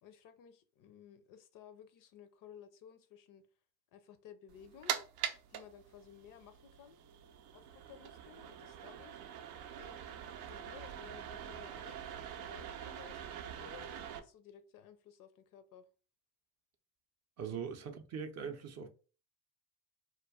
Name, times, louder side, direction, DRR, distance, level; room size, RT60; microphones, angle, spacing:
voice 1, 0.0-3.5 3.9-5.1 5.5-7.0 7.5-9.2 9.8-15.9 17.5-17.6, left 8 dB, 45° left, 0.4 m, -56 dB
sound 1, 4.5-14.2, right 9 dB, 80° right, 0.5 m, -44 dB
voice 2, 17.4-18.9, right 6 dB, 35° right, 0.5 m, -41 dB
2.2 x 2.2 x 3.4 m
hypercardioid pair, 70°, 47 cm